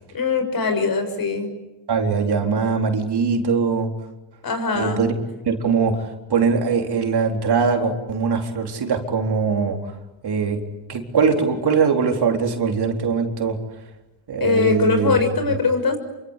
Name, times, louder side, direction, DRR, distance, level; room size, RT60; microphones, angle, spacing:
voice 1, 0.1-1.5 4.4-5.0 14.4-16.0, left 4 dB, 45° left, 8 dB, 6.8 m, -21 dB
voice 2, 1.9-4.0 4.7-5.1 5.4-9.8 10.2-10.6 10.9-13.6 14.3-15.2, right 5 dB, 55° right, 3 dB, 4.1 m, -21 dB
28.0 x 25.0 x 8.3 m, 1.0 s
cardioid pair, 85°, 48 cm